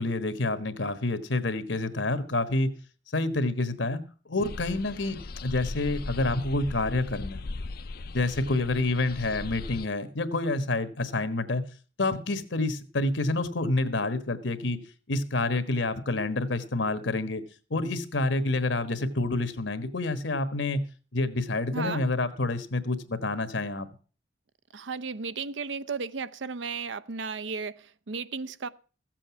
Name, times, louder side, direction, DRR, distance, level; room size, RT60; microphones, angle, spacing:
voice 1, 0.0-2.7 3.1-4.0 4.3-5.2 5.4-7.5 8.1-11.7 12.0-14.8 15.1-17.4 17.7-20.8 21.1-23.9, left 2 dB, 75° left, 1.3 m, -28 dB
sound 1, 4.4-9.9, left 3 dB, 55° left, 0.5 m, -38 dB
voice 2, 21.7-22.0 24.7-28.7, right 5 dB, 75° right, 0.6 m, -34 dB
15.0 x 7.7 x 6.0 m
head